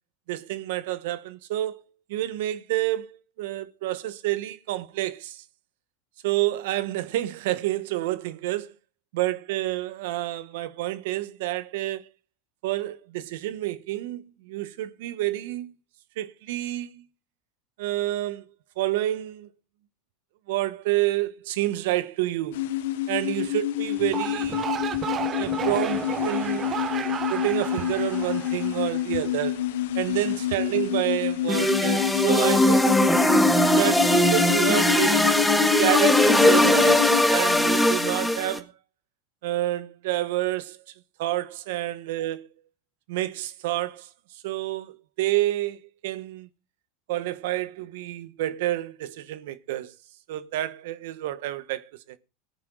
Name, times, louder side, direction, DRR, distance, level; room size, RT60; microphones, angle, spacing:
voice 1, 0.3-1.8 2.1-3.1 3.4-5.4 6.2-8.7 9.1-12.1 12.6-15.7 16.2-17.0 17.8-18.4 18.8-19.5 20.5-22.6 23.1-24.6 25.4-26.7 27.0-29.6 29.9-32.9 33.7-35.3 35.8-38.7 39.4-40.8 41.2-42.5 43.1-44.1 44.4-46.5 47.1-49.9 50.3-51.8, right 15 dB, 75° right, 1.1 m, -28 dB
sound 1, 22.5-37.2, left 12 dB, 80° left, 1.0 m, -27 dB
sound 2, 24.0-29.3, right 8 dB, 35° right, 1.0 m, -33 dB
sound 3, 31.5-38.6, left 1 dB, 5° left, 1.7 m, -20 dB
17.5 x 9.6 x 3.8 m
supercardioid pair, 110°, 0 cm